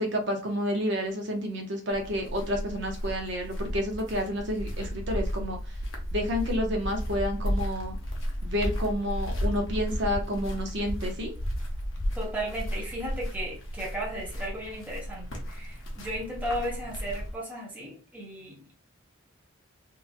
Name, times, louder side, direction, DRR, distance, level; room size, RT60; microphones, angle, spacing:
voice 1, 0.0-5.7 6.1-7.9 8.4-11.3, equal, 55° right, 0.7 m, -30 dB
sound 1, 1.9-17.3, equal, 70° left, 0.7 m, -33 dB
voice 2, 12.2-18.7, right 1 dB, 5° right, 0.7 m, -35 dB
2.8 x 2.5 x 2.5 m
head